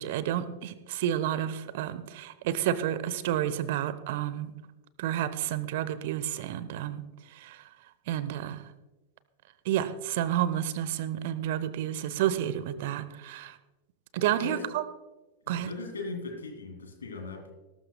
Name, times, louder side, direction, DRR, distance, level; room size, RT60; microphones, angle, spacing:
voice 1, 0.0-4.5 5.0-7.0 7.3-7.6 8.1-8.6 9.6-13.6 14.1-14.8 15.5-15.7, right 11 dB, 50° right, 14 dB, 0.8 m, -30 dB
voice 2, 15.5-17.5, left 3 dB, 70° left, 4 dB, 2.4 m, -38 dB
18.5 x 12.5 x 2.2 m, 1.1 s
figure-of-eight pair, 90°, 0 cm